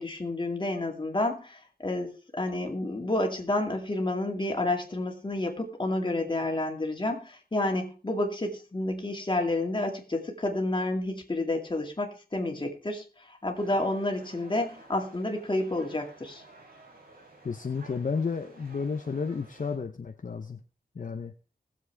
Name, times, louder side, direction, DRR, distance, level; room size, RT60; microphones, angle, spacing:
voice 1, 0.0-16.4, left 2 dB, 30° left, 2 dB, 2.3 m, -30 dB
sound 1, 13.5-19.8, right 2 dB, 65° right, 5.3 m, -53 dB
voice 2, 17.4-20.6 20.9-21.3, left 5 dB, 55° left, 6 dB, 0.8 m, -32 dB
20.0 x 7.4 x 3.5 m, 0.35 s
wide cardioid pair, 105°, 16 cm